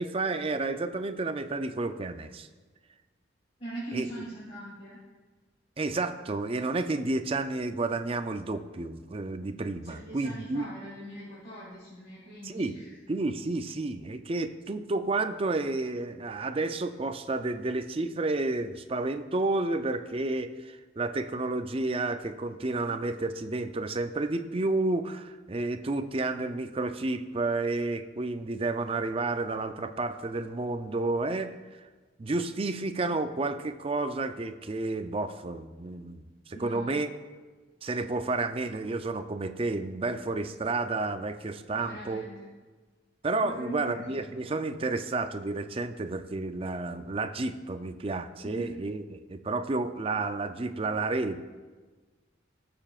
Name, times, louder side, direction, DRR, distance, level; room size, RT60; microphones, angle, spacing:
voice 1, 0.0-2.5 3.9-4.1 5.8-10.7 12.4-12.8 13.1-31.5 32.2-37.1 37.8-42.2 43.2-51.4, right 2 dB, 30° right, 9 dB, 0.4 m, -31 dB
voice 2, 3.6-5.0 9.8-12.9 36.5-37.0 41.7-42.5 43.4-44.2 48.4-48.7, right 1 dB, 35° left, -10 dB, 2.8 m, -41 dB
20.0 x 6.9 x 2.4 m, 1.3 s
head